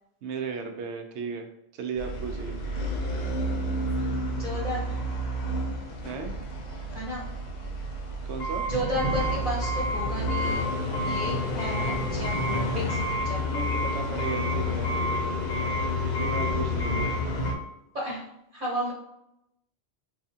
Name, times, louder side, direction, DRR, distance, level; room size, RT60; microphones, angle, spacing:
voice 1, 0.2-2.6 6.0-6.3 8.2-8.7 10.9-11.2 13.3-15.4 16.2-17.1, right 5 dB, 85° right, 4 dB, 0.9 m, -35 dB
sound 1, 2.0-17.5, left 1 dB, 50° left, 0.6 m, -29 dB
voice 2, 4.3-4.9 6.9-7.3 8.6-10.7 11.0-13.8 17.9-18.9, equal, 40° right, -6 dB, 1.1 m, -33 dB
4.1 x 2.4 x 2.7 m, 0.83 s
omnidirectional pair, 1.1 m